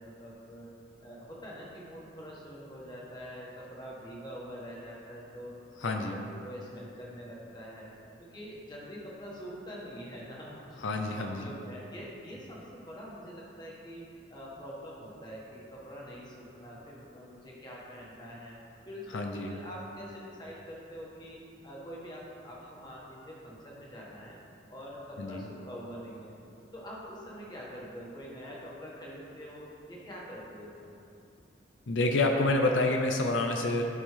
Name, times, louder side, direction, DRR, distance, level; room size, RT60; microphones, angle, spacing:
voice 1, 0.0-7.9 8.2-10.8 11.0-21.4 21.6-24.4 24.7-26.3 26.7-31.0, equal, 20° left, -5 dB, 1.5 m, -45 dB
voice 2, 5.8-6.2 10.8-11.4 19.1-19.6 25.2-25.4 31.9-33.8, left 2 dB, 85° left, 3 dB, 0.6 m, -28 dB
12.5 x 5.3 x 3.3 m, 2.6 s
head